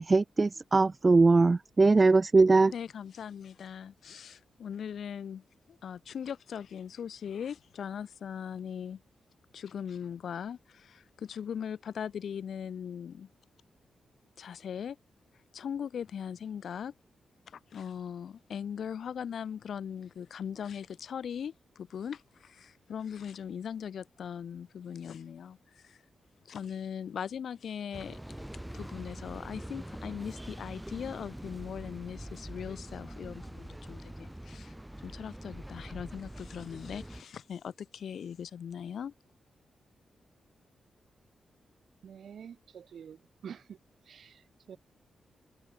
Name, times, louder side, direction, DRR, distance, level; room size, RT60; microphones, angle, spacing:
voice 1, 0.0-2.7, right 3 dB, 25° right, 0.7 m, -21 dB
voice 2, 2.7-9.0 9.5-13.3 14.4-15.0 15.5-16.9 17.5-26.0 26.4-28.2 28.7-34.7 35.0-39.1, left 8 dB, 65° left, 4.9 m, -40 dB
sound 1, 27.9-37.2, right 1 dB, 5° right, 1.6 m, -44 dB
voice 3, 42.0-43.8 44.1-44.8, right 8 dB, 65° right, 7.4 m, -47 dB
wide cardioid pair, 175°, 0 cm